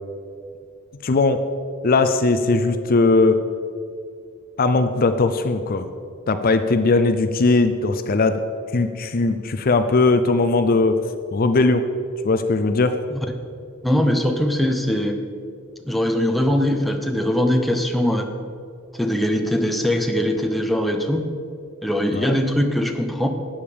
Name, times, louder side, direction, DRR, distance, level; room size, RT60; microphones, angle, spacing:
voice 1, 1.0-1.4 1.8-3.4 4.6-5.9 6.3-8.4 8.7-11.0 11.3-11.8 12.2-13.0 22.1-22.4, left 3 dB, 45° left, 9 dB, 0.5 m, -19 dB
voice 2, 13.8-15.2 15.9-18.3 18.9-21.2 21.8-23.3, equal, ahead, 4 dB, 0.8 m, -21 dB
12.5 x 8.8 x 5.0 m, 2.3 s
head